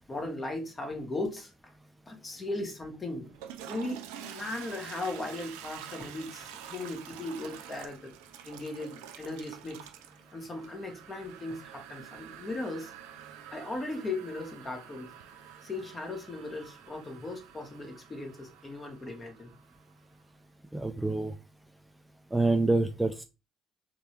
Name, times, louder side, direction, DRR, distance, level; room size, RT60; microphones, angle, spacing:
voice 1, 0.1-1.5 2.1-3.3 3.7-8.1 8.4-9.8 10.3-12.9 13.5-15.1 15.6-19.5, left 2 dB, 35° left, 1.5 m, -37 dB
Toilet flush, 3.2-20.0, right 10 dB, 80° right, 0.4 m, -48 dB
voice 2, 20.7-21.3 22.3-23.2, right 2 dB, 10° right, 0.5 m, -26 dB
3.3 x 3.3 x 2.9 m
hypercardioid pair, 50°, 0 cm